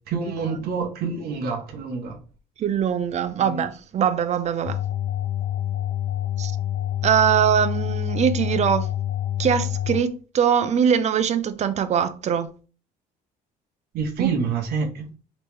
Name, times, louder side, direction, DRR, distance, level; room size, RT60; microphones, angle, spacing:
voice 1, 0.1-2.2 3.4-3.7 13.9-15.1, right 5 dB, 70° right, 0.8 m, -27 dB
voice 2, 2.6-4.8 6.4-6.5 7.0-8.9 9.4-12.5 14.2-14.3, right 8 dB, 40° right, 0.5 m, -22 dB
sound 1, 4.6-10.0, left 12 dB, 55° left, 0.5 m, -27 dB
3.0 x 3.0 x 3.4 m
cardioid pair, 110°, 17 cm